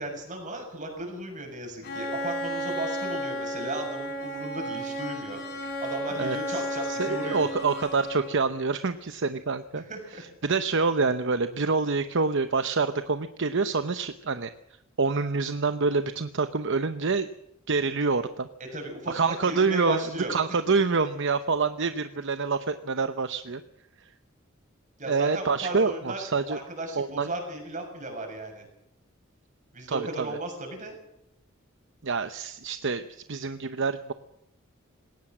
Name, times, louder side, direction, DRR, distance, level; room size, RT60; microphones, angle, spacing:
voice 1, 0.0-5.4 5.8-7.5 9.7-10.2 18.7-19.1 19.5-20.3 25.0-26.2 26.5-28.7 29.7-31.0, right 2 dB, 40° right, 3 dB, 6.8 m, -35 dB
Bowed string instrument, 1.8-8.5, equal, 55° left, 7.4 m, -33 dB
voice 2, 6.2-9.8 10.2-14.5 15.0-17.3 17.7-18.5 19.1-20.0 20.3-23.6 25.1-26.6 27.0-27.3 29.9-30.3 32.0-33.0 33.3-34.1, right 4 dB, 60° right, 10 dB, 0.9 m, -26 dB
20.0 x 18.0 x 7.5 m, 0.79 s
head